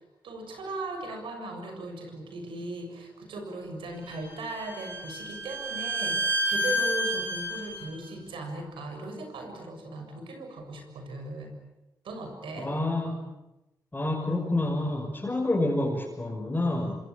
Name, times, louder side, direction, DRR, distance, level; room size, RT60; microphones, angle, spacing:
voice 1, 0.0-11.5 12.0-12.7, right 2 dB, 85° right, 5 dB, 7.1 m, -38 dB
Bowed string instrument, 4.1-7.9, right 1 dB, 25° right, 7.1 m, -30 dB
voice 2, 12.6-13.2 13.9-17.0, left 2 dB, 20° left, -3 dB, 6.3 m, -28 dB
26.5 x 26.0 x 8.6 m, 0.96 s
cardioid pair, 70°, 8 cm